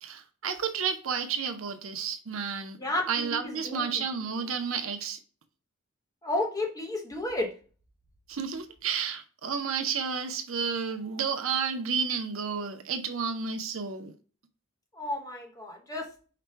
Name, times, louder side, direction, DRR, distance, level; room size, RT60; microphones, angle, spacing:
voice 1, 0.0-2.8 3.1-5.2 8.3-14.1, right 6 dB, 70° right, 0.6 m, -31 dB
voice 2, 2.8-4.0 6.2-7.5 14.9-16.1, left 2 dB, 15° left, 1.0 m, -32 dB
5.0 x 2.2 x 4.4 m
head